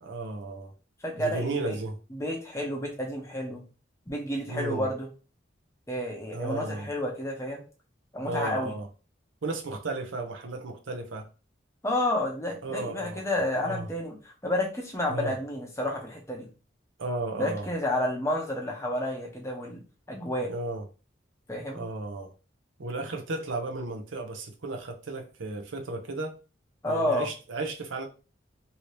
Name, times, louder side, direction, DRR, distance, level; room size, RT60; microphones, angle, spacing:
voice 1, 0.0-0.7 1.2-2.0 4.5-4.9 6.3-6.9 8.2-8.9 9.4-11.3 12.6-13.3 13.6-13.9 15.1-15.3 17.0-17.7 20.4-20.9 21.7-22.3 22.8-26.4 26.9-28.1, right 2 dB, 90° right, 0.6 m, -34 dB
voice 2, 1.0-1.8 2.1-3.6 4.1-5.1 5.9-7.6 8.1-8.7 11.8-16.5 17.4-19.8 20.1-20.5 21.5-21.8 26.8-27.3, left 1 dB, 15° left, 0.7 m, -30 dB
2.8 x 2.8 x 3.2 m
head